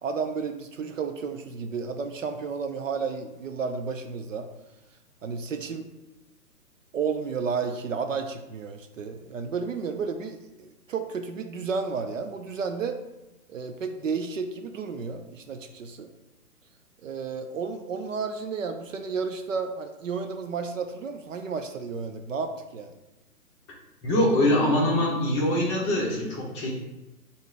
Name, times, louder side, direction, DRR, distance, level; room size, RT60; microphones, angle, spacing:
voice 1, 0.0-4.5 5.2-5.9 6.9-13.0 13.5-16.1 17.0-22.9, right 5 dB, 55° right, 7 dB, 0.5 m, -32 dB
voice 2, 24.0-26.7, left 1 dB, 20° left, -4 dB, 0.8 m, -23 dB
5.7 x 2.7 x 3.4 m, 1.0 s
hypercardioid pair, 145°, 46 cm